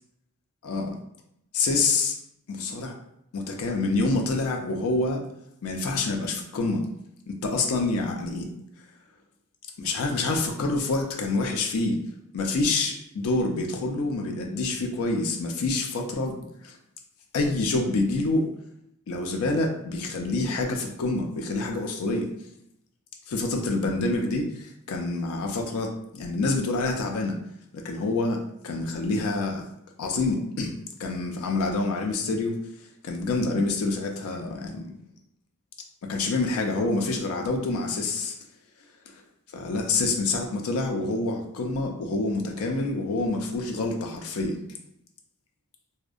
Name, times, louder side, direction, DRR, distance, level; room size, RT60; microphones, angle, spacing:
voice 1, 1.5-2.1 2.5-2.9 3.3-5.2 5.6-6.8 7.3-8.5 9.8-12.0 12.3-16.4 16.6-16.7 17.3-18.5 19.1-22.3 23.3-27.4 27.8-29.6 30.0-30.7 31.0-32.6 33.0-34.9 36.0-38.3 39.5-44.6, left 3 dB, 80° left, 2 dB, 0.4 m, -27 dB
2.6 x 2.1 x 2.4 m, 0.77 s
head